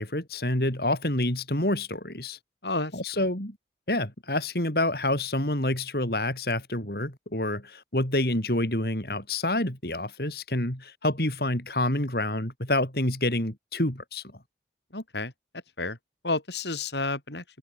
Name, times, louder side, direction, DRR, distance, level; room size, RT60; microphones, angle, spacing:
voice 1, 0.0-2.4 2.9-3.5 3.9-14.2, left 1 dB, 60° left, 5.1 m, -28 dB
voice 2, 14.9-15.3 15.8-16.0 16.2-17.4, left 3 dB, 80° left, 6.8 m, -30 dB
head